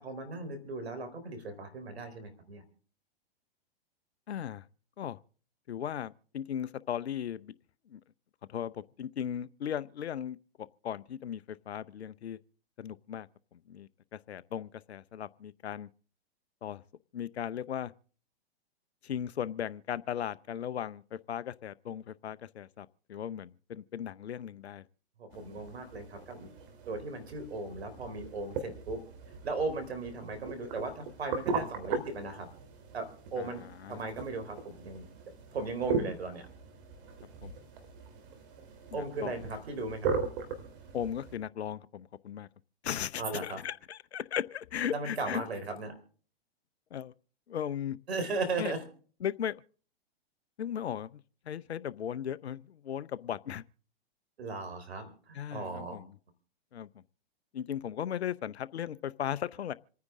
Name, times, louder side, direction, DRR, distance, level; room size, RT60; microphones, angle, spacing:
voice 1, 0.0-2.6 25.2-26.5 26.9-29.0 29.4-32.5 32.9-33.6 33.9-35.1 35.5-36.5 38.9-40.1 43.2-43.6 44.9-45.9 48.1-48.9 54.4-56.0, right 3 dB, 75° right, 4.1 m, -37 dB
voice 2, 4.3-4.7 5.0-5.2 5.7-7.5 7.9-8.0 8.5-12.4 12.8-13.3 13.5-15.9 16.6-16.8 17.1-17.9 19.0-24.8 33.4-33.5 33.8-34.0 37.4-37.5 38.9-39.3 40.9-42.5 42.8-45.4 46.9-47.1 47.5-48.0 48.6-48.7 49.2-49.6 50.6-51.2 51.5-53.6 55.3-56.1 56.7-56.9 57.5-59.7, left 9 dB, 80° left, 0.7 m, -37 dB
sound 1, 25.3-41.4, right 5 dB, 55° right, 3.5 m, -39 dB
27.5 x 9.6 x 3.7 m
hypercardioid pair, 115°, 32 cm